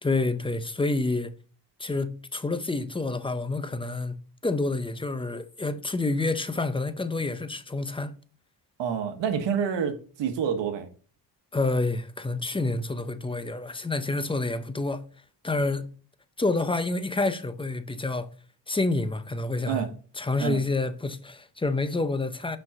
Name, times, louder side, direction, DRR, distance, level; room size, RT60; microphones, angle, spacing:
voice 1, 0.0-1.3 1.8-4.2 4.4-8.1 11.5-15.1 15.4-15.9 16.4-18.3 18.7-19.8 20.2-22.6, left 2 dB, 15° left, 0.6 m, -28 dB
voice 2, 8.8-10.9 19.7-19.9 20.4-20.6, right 7 dB, 85° right, 1.1 m, -28 dB
6.0 x 4.5 x 3.6 m
cardioid pair, 85°, 42 cm